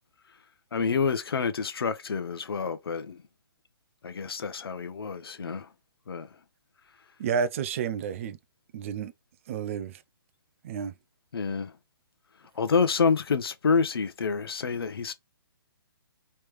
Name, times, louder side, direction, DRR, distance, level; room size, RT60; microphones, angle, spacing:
voice 1, 0.7-3.2 4.0-5.7 6.1-6.3 11.3-11.7 12.6-15.1, left 5 dB, 75° left, 0.8 m, -28 dB
voice 2, 7.2-8.4 8.7-9.1 9.5-10.0 10.6-10.9, right 7 dB, 35° right, 0.4 m, -30 dB
3.3 x 3.2 x 3.0 m
hypercardioid pair, 150°, 13 cm